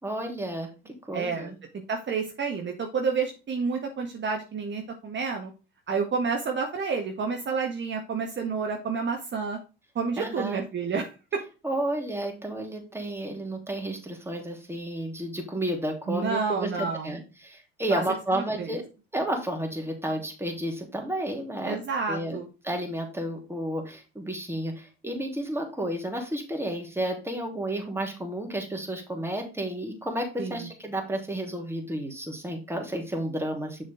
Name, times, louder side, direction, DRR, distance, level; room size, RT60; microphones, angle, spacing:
voice 1, 0.0-1.6 10.2-10.6 11.6-18.8 19.1-21.8 22.1-22.4 22.6-33.8, right 1 dB, 10° right, 2 dB, 3.3 m, -32 dB
voice 2, 1.1-1.5 1.9-5.5 5.9-9.6 9.9-11.4 16.1-17.1 17.9-18.0 18.3-18.8 21.6-22.5 30.4-30.6, right 5 dB, 40° right, 3 dB, 1.6 m, -29 dB
7.2 x 6.3 x 3.7 m, 0.32 s
hypercardioid pair, 70°, 29 cm